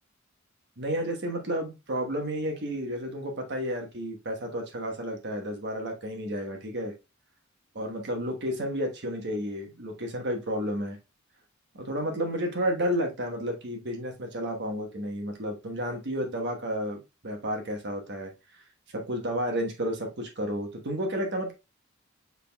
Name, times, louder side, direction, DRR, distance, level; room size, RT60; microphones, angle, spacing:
voice 1, 0.8-6.9 7.7-11.0 11.7-18.3 18.9-21.5, equal, 55° right, 3 dB, 1.2 m, -31 dB
6.6 x 3.5 x 2.2 m, 0.26 s
head